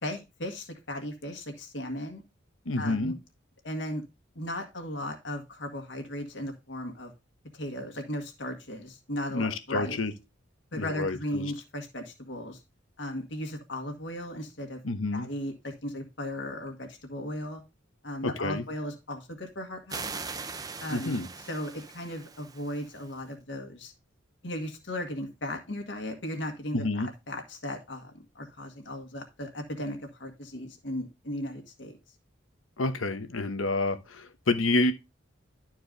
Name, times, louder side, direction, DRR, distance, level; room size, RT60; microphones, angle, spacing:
voice 1, 0.0-2.2 2.8-3.2 3.6-4.0 4.4-7.1 7.5-10.0 10.7-12.6 13.0-14.8 15.1-17.6 18.0-20.1 20.8-21.1 21.5-23.9 24.4-32.0, left 1 dB, 60° left, 1.8 m, -36 dB
voice 2, 2.7-3.1 9.3-10.1 10.7-11.5 14.8-15.3 18.2-18.6 20.9-21.3 26.7-27.1 32.8-34.9, left 2 dB, 90° left, 1.0 m, -29 dB
sound 1, 19.9-23.2, right 4 dB, 20° right, 0.6 m, -40 dB
12.0 x 4.6 x 3.9 m
head